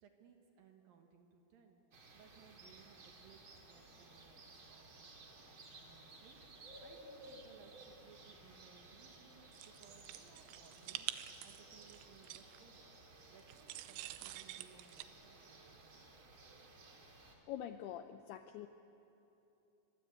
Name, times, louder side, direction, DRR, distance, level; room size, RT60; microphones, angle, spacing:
voice 1, 0.0-1.8 2.1-5.4 5.9-6.4 6.8-12.7 13.3-16.1, right 6 dB, 60° right, 3 dB, 2.7 m, -64 dB
sound 1, 1.9-17.3, right 2 dB, 35° right, 2.3 m, -58 dB
sound 2, 9.5-12.6 13.5-15.0, right 14 dB, 80° right, 3.0 m, -47 dB
voice 2, 17.2-18.7, left 10 dB, 85° left, 8 dB, 2.3 m, -46 dB
24.5 x 22.0 x 8.2 m, 2.9 s
omnidirectional pair, 5.4 m